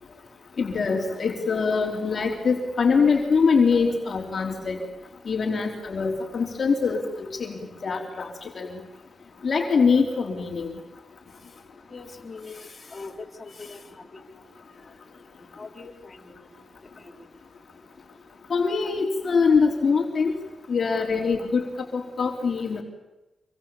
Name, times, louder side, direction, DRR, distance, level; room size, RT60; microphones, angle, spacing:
voice 1, 0.6-4.9 5.3-8.8 9.4-10.7 18.5-20.4 20.7-22.8, left 5 dB, 55° left, 2 dB, 3.5 m, -23 dB
voice 2, 11.9-14.4 15.6-16.5 17.0-17.1, left 3 dB, 30° left, 1 dB, 4.1 m, -42 dB
26.5 x 23.5 x 7.3 m, 1.0 s
cardioid pair, 85°, 0 cm